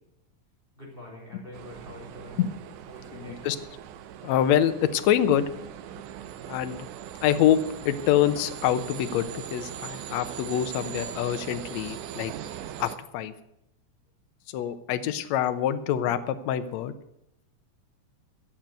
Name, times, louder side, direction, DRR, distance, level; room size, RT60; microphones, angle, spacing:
voice 1, 0.8-2.4 2.9-3.4, left 1 dB, 15° right, -3 dB, 4.3 m, -45 dB
sound 1, 1.5-13.0, right 10 dB, 85° right, 2.3 m, -40 dB
voice 2, 3.1-3.6 4.2-5.5 6.5-6.9 7.2-7.6 7.9-12.3 12.8-13.3 14.5-16.9, left 10 dB, 70° left, 10 dB, 1.9 m, -25 dB
15.0 x 7.3 x 9.3 m, 0.80 s
omnidirectional pair, 3.7 m